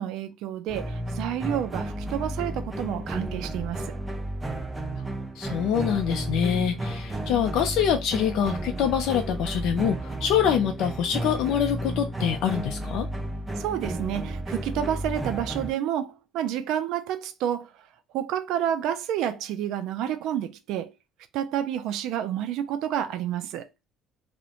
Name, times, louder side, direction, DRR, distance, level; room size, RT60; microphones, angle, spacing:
voice 1, 0.0-3.9 13.6-17.9 18.1-20.9 21.3-23.7, right 10 dB, 75° right, 0.3 m, -29 dB
sound 1, 0.7-15.7, right 1 dB, 15° right, 0.5 m, -32 dB
voice 2, 5.4-13.1, left 8 dB, 75° left, 0.4 m, -25 dB
2.4 x 2.1 x 2.8 m
cardioid pair, 140°, 0 cm